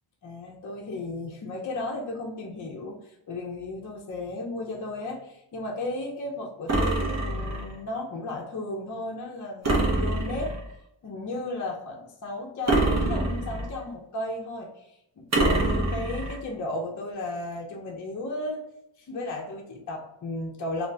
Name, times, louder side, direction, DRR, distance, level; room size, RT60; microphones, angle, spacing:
voice 1, 0.2-10.5 11.0-14.9 15.2-18.6 19.0-20.9, left 2 dB, 40° left, 0 dB, 0.6 m, -34 dB
sound 1, 6.7-7.7 9.6-10.7 12.7-13.8 15.3-16.4, right 2 dB, 35° right, 0.8 m, -25 dB
3.3 x 2.5 x 2.6 m, 0.81 s
wide cardioid pair, 135°, 47 cm